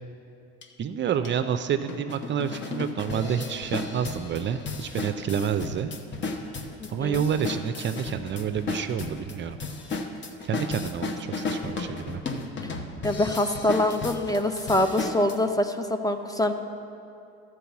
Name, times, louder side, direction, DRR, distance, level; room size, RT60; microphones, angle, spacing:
sound 1, 0.6-0.7 1.2-1.3 1.9-15.4, left 3 dB, 35° left, 1.0 m, -34 dB
voice 1, 0.8-5.9 6.9-9.6 10.4-12.2, right 8 dB, 35° right, 9 dB, 0.5 m, -29 dB
voice 2, 13.0-16.5, left 1 dB, 10° left, 7 dB, 0.5 m, -24 dB
12.5 x 4.7 x 7.1 m, 2.6 s
supercardioid pair, 85°, 31 cm